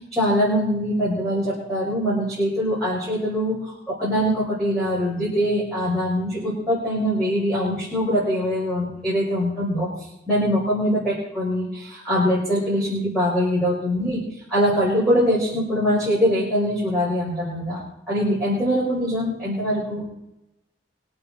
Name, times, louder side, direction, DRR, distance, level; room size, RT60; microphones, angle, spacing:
voice 1, 0.1-3.6 3.9-9.9 10.3-14.2 14.5-20.1, equal, 5° left, -10 dB, 5.8 m, -23 dB
24.5 x 8.8 x 4.4 m, 0.88 s
head